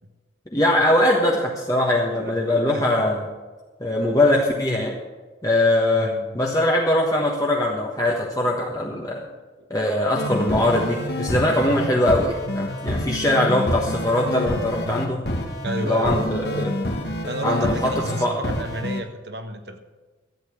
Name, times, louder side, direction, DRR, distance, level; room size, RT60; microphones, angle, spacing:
voice 1, 0.5-3.3 3.8-4.9 5.4-9.3 9.7-15.2 15.8-16.7 17.4-17.9 18.2-18.4, left 1 dB, 20° left, -2 dB, 1.3 m, -21 dB
voice 2, 2.7-3.1 5.9-6.4 9.6-9.7 15.6-16.3 17.3-19.8, right 1 dB, 60° right, 7 dB, 1.3 m, -32 dB
sound 1, 10.2-19.0, left 1 dB, 60° left, 1.9 m, -27 dB
13.5 x 9.0 x 6.7 m, 1.3 s
head